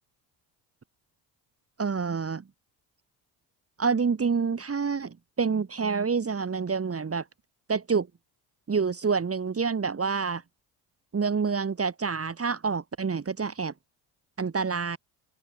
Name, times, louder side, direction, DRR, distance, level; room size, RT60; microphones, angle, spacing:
voice 1, 1.8-2.4 3.8-7.2 7.7-8.1 8.7-10.4 11.1-13.7 14.4-15.0, right 5 dB, 30° right, 2.9 m, -27 dB
open air
supercardioid pair, 65°, 47 cm